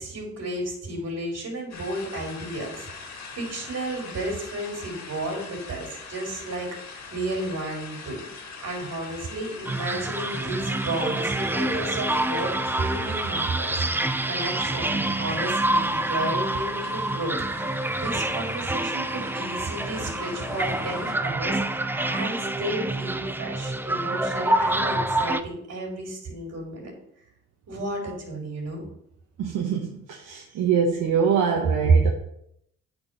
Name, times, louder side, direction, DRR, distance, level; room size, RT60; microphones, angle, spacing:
voice 1, 0.0-6.7 7.1-8.2 8.6-17.7 17.9-26.9 27.7-28.8 30.5-30.6, right 1 dB, 55° right, -1 dB, 3.8 m, -33 dB
sound 1, 1.7-21.2, left 5 dB, 65° left, 2.0 m, -42 dB
ambidextrous language, 9.6-25.4, right 1 dB, 5° right, 0.4 m, -27 dB
voice 2, 29.4-32.1, right 7 dB, 80° right, 0 dB, 1.2 m, -24 dB
8.6 x 4.7 x 5.5 m, 0.75 s
cardioid pair, 90°, 30 cm